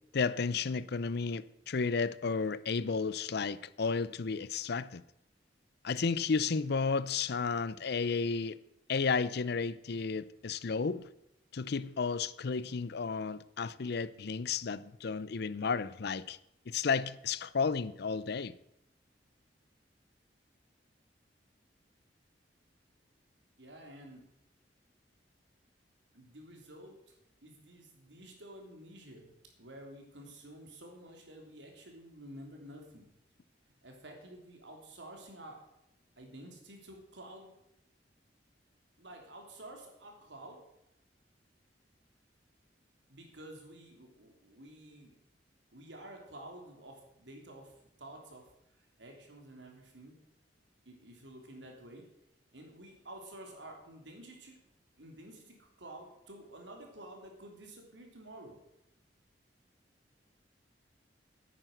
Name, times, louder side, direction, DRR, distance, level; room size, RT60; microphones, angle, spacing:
voice 1, 0.1-5.0 5.8-8.6 8.9-11.1 11.5-16.4 16.7-18.5, left 5 dB, 65° left, 0.6 m, -32 dB
voice 2, 23.6-24.3 26.1-27.1 27.4-29.3 29.6-33.1 33.8-35.6 36.2-37.5 39.0-40.6 43.1-45.2 45.7-47.7 48.0-48.5 48.8-50.1 50.8-52.0 52.5-54.6 55.0-58.6, right 1 dB, 85° right, 3.3 m, -50 dB
10.5 x 9.1 x 7.9 m
head